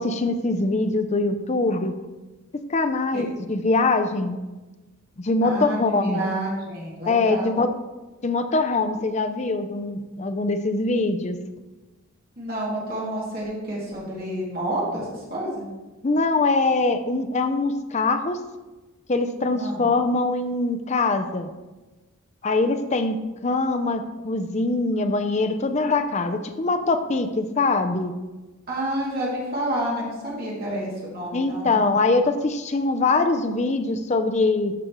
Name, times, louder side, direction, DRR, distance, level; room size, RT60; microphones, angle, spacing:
voice 1, 0.0-1.9 2.7-4.4 5.2-6.2 7.1-7.7 8.2-11.4 16.0-18.4 19.1-21.5 22.4-23.2 23.4-28.1 31.3-34.7, left 3 dB, 30° left, 9 dB, 0.5 m, -23 dB
voice 2, 5.4-7.6 12.4-15.7 19.5-19.9 28.7-31.7, right 1 dB, 45° right, -5 dB, 2.6 m, -29 dB
12.5 x 5.1 x 3.1 m, 1.2 s
head